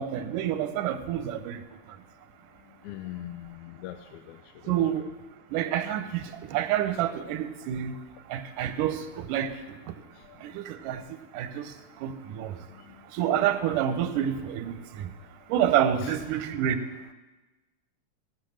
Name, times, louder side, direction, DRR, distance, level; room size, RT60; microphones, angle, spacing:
voice 1, 0.0-1.6 4.7-5.1 5.5-7.9 8.3-9.5 10.4-11.0 11.3-11.7 12.0-12.5 13.1-15.1 15.5-16.8, right 10 dB, 90° right, 10 dB, 2.3 m, -28 dB
voice 2, 2.8-4.4 4.6-4.7 12.9-13.0 16.0-16.1, left 13 dB, 80° left, 9 dB, 1.8 m, -41 dB
17.5 x 6.5 x 6.4 m, 1.2 s
omnidirectional pair, 3.6 m